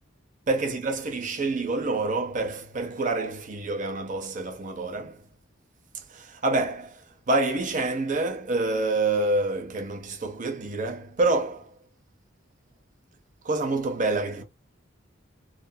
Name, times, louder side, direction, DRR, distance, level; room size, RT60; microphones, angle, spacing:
voice 1, 0.5-5.3 5.9-11.7 13.4-14.4, right 2 dB, 40° right, 0.7 m, -27 dB
2.7 x 2.6 x 2.3 m
head